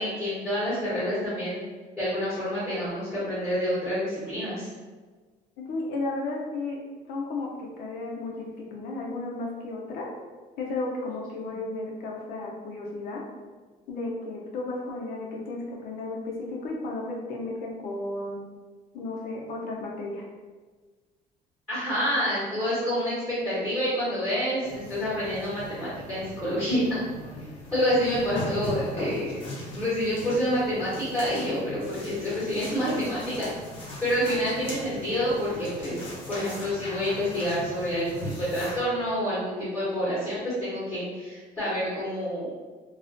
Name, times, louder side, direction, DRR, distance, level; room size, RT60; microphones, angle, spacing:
voice 1, 0.0-1.6 2.0-4.7 11.5-11.6 21.7-27.0 27.7-29.4 29.7-33.5 34.0-42.5, equal, 5° left, -12 dB, 1.0 m, -28 dB
voice 2, 5.6-6.8 7.1-10.1 10.6-13.2 13.9-18.4 18.9-20.2, left 2 dB, 70° left, -1 dB, 0.6 m, -33 dB
sound 1, 24.6-38.8, left 1 dB, 35° left, 0.7 m, -39 dB
2.3 x 2.1 x 2.5 m, 1.4 s
cardioid pair, 135°, 15 cm